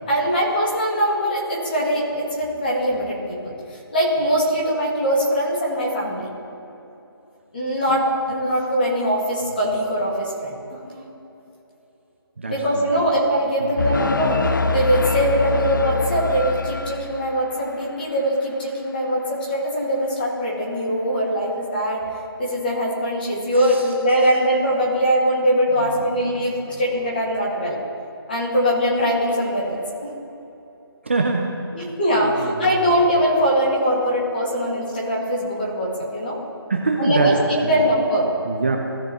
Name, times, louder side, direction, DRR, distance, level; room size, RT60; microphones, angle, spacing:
voice 1, 0.1-3.5 3.9-6.2 7.5-11.1 12.5-14.4 14.7-22.1 22.4-27.8 28.3-30.1 31.7-36.4 37.0-38.3, equal, 20° left, -4 dB, 2.0 m, -22 dB
sound 1, 13.8-17.6, left 4 dB, 55° left, 0.4 m, -24 dB
voice 2, 23.5-23.9 25.8-26.0 26.3-26.4 31.0-31.6 32.2-32.7 36.7-37.4 38.5-38.8, right 3 dB, 30° right, 1 dB, 0.6 m, -24 dB
17.0 x 6.3 x 3.0 m, 2.9 s
figure-of-eight pair, 175°, 13 cm